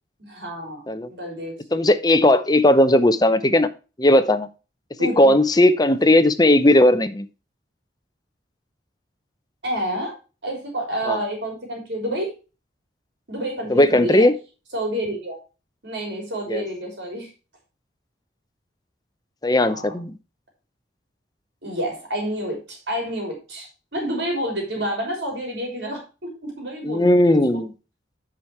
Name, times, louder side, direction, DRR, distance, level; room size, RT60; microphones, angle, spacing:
voice 1, 0.2-1.8 5.0-5.3 9.6-10.1 10.4-12.3 13.3-14.3 14.7-15.4 15.8-17.3 19.6-19.9 21.6-27.4, right 1 dB, 70° right, 1 dB, 3.8 m, -29 dB
voice 2, 1.7-3.7 4.0-4.5 5.2-7.3 11.1-11.2 13.7-14.3 16.5-16.6 19.4-20.1 26.8-27.7, left 1 dB, 20° left, 10 dB, 0.7 m, -17 dB
10.0 x 5.1 x 4.6 m, 0.32 s
head